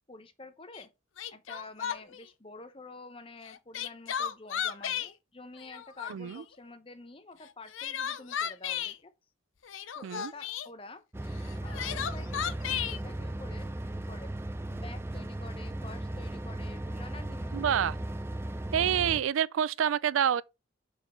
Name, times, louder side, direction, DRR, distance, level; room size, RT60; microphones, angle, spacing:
voice 1, 0.1-0.9 1.3-9.1 9.9-11.0 11.6-14.3 14.7-18.0, left 2 dB, 25° left, 0.8 m, -49 dB
Crying sobbing, 0.7-0.8 1.2-2.2 3.4-5.1 5.6-6.4 7.4-9.0 9.6-10.7 11.4-13.0, left 9 dB, 80° left, 0.6 m, -34 dB
voice 2, 6.1-6.4 10.0-10.3 17.5-17.9 18.7-20.4, right 9 dB, 90° right, 0.4 m, -27 dB
sound 1, 11.1-19.2, right 1 dB, 10° right, 0.4 m, -36 dB
6.9 x 4.4 x 4.4 m
head